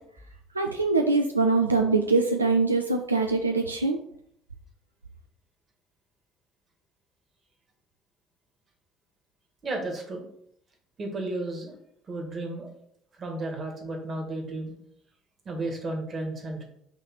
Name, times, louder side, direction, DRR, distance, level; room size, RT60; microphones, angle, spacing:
voice 1, 0.6-4.0, right 3 dB, 85° right, 4 dB, 0.3 m, -23 dB
voice 2, 9.6-10.2 11.0-11.7 12.1-12.7 13.2-14.7 15.5-16.6, right 2 dB, 40° right, 2 dB, 1.9 m, -33 dB
5.7 x 3.3 x 5.6 m, 0.70 s
figure-of-eight pair, 50°, 0 cm